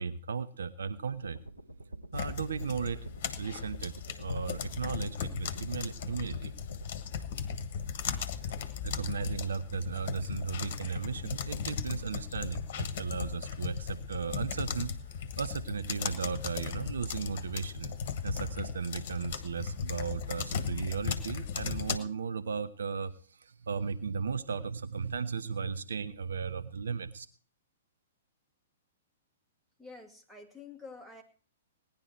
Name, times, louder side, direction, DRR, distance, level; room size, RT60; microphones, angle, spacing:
voice 1, 0.0-1.4 2.1-3.1 3.4-6.5 8.8-14.9 15.4-17.9 18.2-27.3, right 5 dB, 65° right, 11 dB, 0.8 m, -36 dB
sound 1, 1.1-6.8, right 2 dB, 80° right, 2.3 m, -47 dB
sound 2, 2.1-22.0, left 7 dB, 45° left, 1.4 m, -37 dB
voice 2, 29.8-31.2, left 3 dB, 5° right, 2 dB, 2.2 m, -48 dB
18.0 x 10.5 x 4.5 m, 0.42 s
figure-of-eight pair, 110°, 0 cm